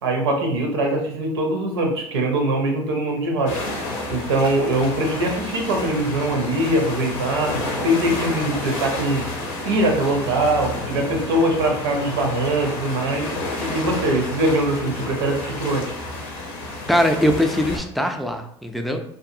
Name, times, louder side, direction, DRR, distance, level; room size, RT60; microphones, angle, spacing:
voice 1, 0.0-3.5 4.1-9.3 9.6-13.3 13.6-15.9, right 1 dB, 85° right, 2 dB, 0.6 m, -22 dB
el cantil sunset, 3.5-17.8, left 2 dB, 80° left, 0.6 m, -30 dB
voice 2, 16.9-19.0, equal, ahead, 4 dB, 0.4 m, -21 dB
2.6 x 2.4 x 2.5 m, 0.70 s
hypercardioid pair, 75°, 13 cm